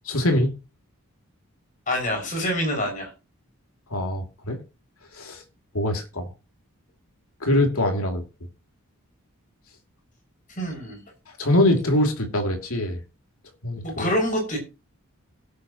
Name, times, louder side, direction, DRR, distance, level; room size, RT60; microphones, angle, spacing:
voice 1, 0.0-0.5 3.9-4.6 5.1-5.4 5.7-6.3 7.4-8.2 11.4-13.0 13.6-14.1, left 1 dB, 75° left, 2.8 m, -23 dB
voice 2, 1.9-3.1 10.6-11.0 13.8-14.6, equal, 35° left, 6.2 m, -26 dB
17.5 x 8.5 x 3.0 m
head